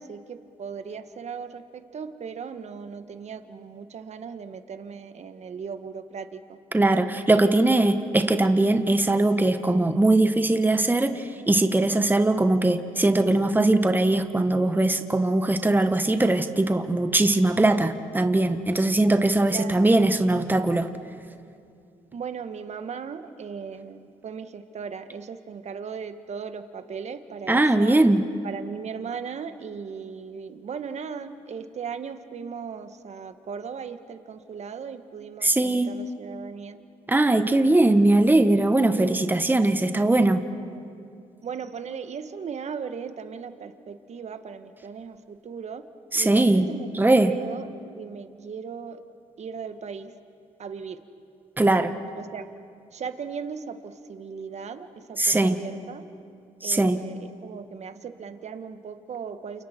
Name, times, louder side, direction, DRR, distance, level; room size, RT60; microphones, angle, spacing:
voice 1, 0.0-6.6 7.3-8.0 19.5-19.9 22.1-28.0 28.4-36.8 38.9-39.2 41.4-45.8 46.1-47.7 48.0-49.0 49.4-50.1 50.6-51.0 52.2-52.4 52.9-56.0 56.6-59.6, right 6 dB, 55° right, 9 dB, 1.5 m, -37 dB
voice 2, 6.7-20.9 27.5-28.2 35.4-35.9 37.1-40.4 46.1-46.7 46.9-47.3 51.6-51.9 55.2-55.6 56.6-57.0, right 2 dB, 15° right, 8 dB, 1.4 m, -20 dB
29.5 x 28.5 x 4.5 m, 2.4 s
supercardioid pair, 60°, 14 cm